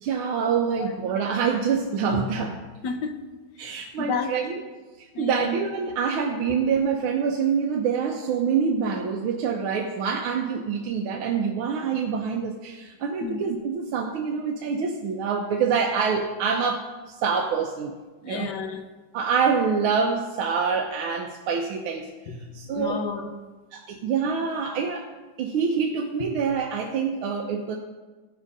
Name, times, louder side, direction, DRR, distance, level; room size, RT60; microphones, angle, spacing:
voice 1, 0.0-2.5 3.6-4.5 5.0-16.9 17.2-18.0 18.2-18.5 19.1-22.1 22.5-23.0 23.7-25.1 25.4-27.8, right 6 dB, 90° right, 1.7 m, -26 dB
voice 2, 2.8-3.2 3.6-4.4 5.1-5.5 13.2-13.4 18.2-18.9 22.3-23.4 26.2-26.4, left 5 dB, 65° left, 1.3 m, -32 dB
15.5 x 6.3 x 5.3 m
omnidirectional pair, 2.2 m